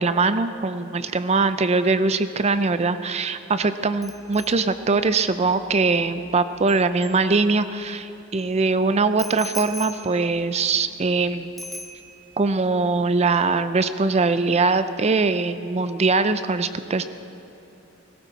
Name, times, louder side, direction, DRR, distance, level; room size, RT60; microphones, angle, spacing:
voice 1, 0.0-11.5 12.4-17.1, right 3 dB, 30° right, 11 dB, 0.5 m, -22 dB
Bicycle bell, 4.0-7.8 9.2-11.2 11.6-12.4 12.7-13.0, equal, ahead, 1.2 m, -41 dB
18.0 x 17.0 x 4.1 m, 3.0 s
head